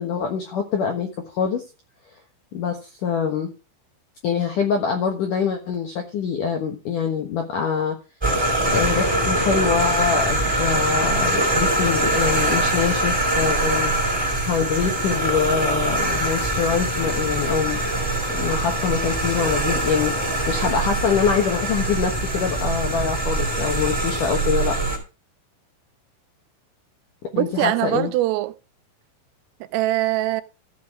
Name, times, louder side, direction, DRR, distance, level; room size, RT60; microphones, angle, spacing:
voice 1, 0.0-1.6 2.5-3.5 4.2-8.0 8.7-13.9 14.4-17.8 18.3-20.1 20.5-24.8 27.4-28.1, left 6 dB, 75° left, 1.9 m, -24 dB
sound 1, 8.2-25.0, right 1 dB, 5° right, 4.0 m, -23 dB
voice 2, 27.3-28.5 29.6-30.4, right 16 dB, 85° right, 3.3 m, -22 dB
15.0 x 6.3 x 4.8 m
omnidirectional pair, 5.9 m